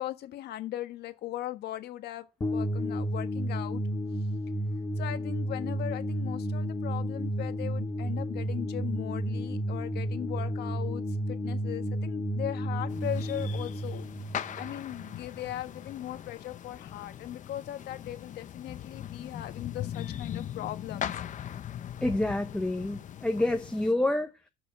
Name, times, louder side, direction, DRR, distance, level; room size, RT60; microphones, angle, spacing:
voice 1, 0.0-3.8 5.0-14.0 14.5-21.1, left 13 dB, 75° left, 1.4 m, -38 dB
sound 1, 2.4-15.5, equal, 20° left, 2.0 m, -32 dB
sound 2, 12.9-23.9, left 10 dB, 50° left, 0.9 m, -40 dB
voice 2, 22.0-24.3, left 1 dB, 5° left, 0.9 m, -28 dB
12.0 x 6.2 x 4.6 m
cardioid pair, 110°, 17 cm